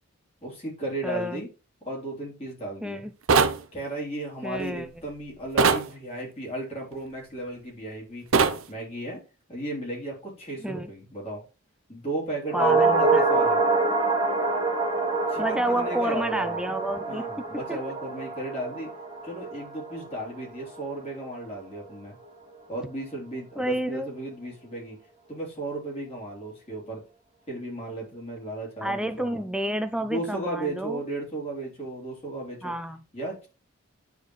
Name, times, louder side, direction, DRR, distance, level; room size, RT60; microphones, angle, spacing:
voice 1, 0.4-1.5 1.8-3.0 3.7-9.2 9.5-11.4 11.9-13.6 15.3-16.6 17.1-18.9 19.2-22.2 22.7-25.0 25.3-27.0 27.5-29.4 30.0-32.7 33.1-33.5, right 1 dB, 30° left, -3 dB, 3.3 m, -35 dB
voice 2, 1.0-1.4 2.8-3.1 4.4-4.9 10.6-10.9 12.5-13.3 15.4-17.2 17.7-17.8 23.6-24.1 28.8-31.0 32.6-33.0, right 1 dB, 5° right, 9 dB, 0.4 m, -29 dB
sound 1, 3.3-3.6 5.6-5.9 8.3-8.6, right 5 dB, 70° right, 0.7 m, -19 dB
sound 2, 12.5-21.0 21.2-21.3, right 3 dB, 20° right, 2.0 m, -26 dB
9.4 x 4.5 x 3.1 m, 0.32 s
head